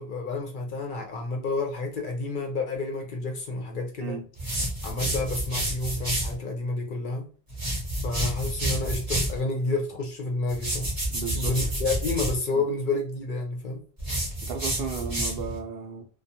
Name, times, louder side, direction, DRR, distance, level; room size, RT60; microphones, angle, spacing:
voice 1, 0.0-4.2 4.8-7.3 8.0-10.9 11.3-13.8, left 3 dB, 55° left, 2 dB, 0.7 m, -30 dB
sound 1, 4.4-6.4 7.5-9.4 10.5-12.4 14.0-15.6, right 1 dB, 20° right, 0.7 m, -29 dB
voice 2, 11.1-11.5 12.5-12.6 14.5-16.1, right 6 dB, 65° right, 4 dB, 0.8 m, -34 dB
2.4 x 2.3 x 2.7 m, 0.39 s
omnidirectional pair, 1.1 m